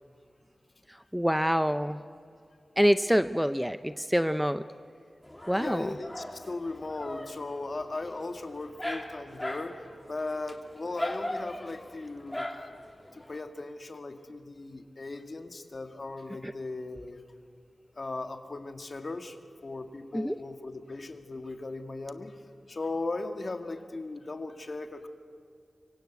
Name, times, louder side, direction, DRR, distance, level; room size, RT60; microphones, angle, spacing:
voice 1, 1.1-2.0 2.8-4.6 5.5-5.9 16.4-16.5 20.1-20.3, equal, ahead, 12 dB, 0.6 m, -26 dB
Dog, 5.2-13.4, left 1 dB, 15° left, 2.7 m, -40 dB
voice 2, 5.6-9.8 10.1-12.5 13.1-17.2 18.0-19.4 19.6-22.4 22.7-25.1, left 2 dB, 50° left, 7 dB, 2.0 m, -37 dB
25.5 x 23.0 x 8.2 m, 2.3 s
wide cardioid pair, 65°, 0 cm